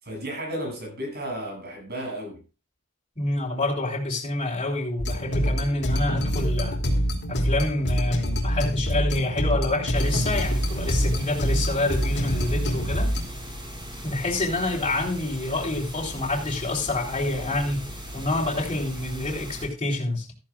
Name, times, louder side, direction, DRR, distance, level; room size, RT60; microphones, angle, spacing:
voice 1, 0.0-2.4, equal, 50° right, 7.7 m, -33 dB
voice 2, 3.2-6.8 7.3-13.1 14.0-20.3, left 2 dB, 30° left, 3.8 m, -27 dB
sound 1, 5.0-13.2, equal, 55° left, 2.8 m, -25 dB
sound 2, 9.9-19.7, equal, 20° right, 5.1 m, -38 dB
15.0 x 14.0 x 2.5 m
head